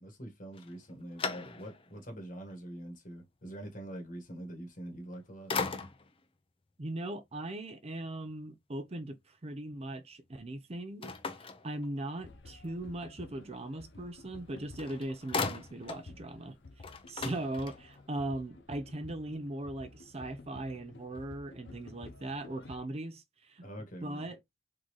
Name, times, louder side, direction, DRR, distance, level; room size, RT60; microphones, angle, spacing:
voice 1, 0.0-5.6 23.6-24.3, right 1 dB, 45° left, 1.5 m, -44 dB
sound 1, 0.5-2.0 2.5-2.6 4.8-5.2 5.5-6.2 11.0-12.3 14.4-14.5 14.8-16.1 16.4-16.5 16.8-18.1, left 4 dB, 30° left, 0.6 m, -38 dB
voice 2, 6.8-16.6 17.1-23.6 24.0-24.4, right 1 dB, 35° right, 0.6 m, -39 dB
sound 2, 12.2-22.8, left 3 dB, 70° left, 0.8 m, -53 dB
3.9 x 3.8 x 3.1 m
head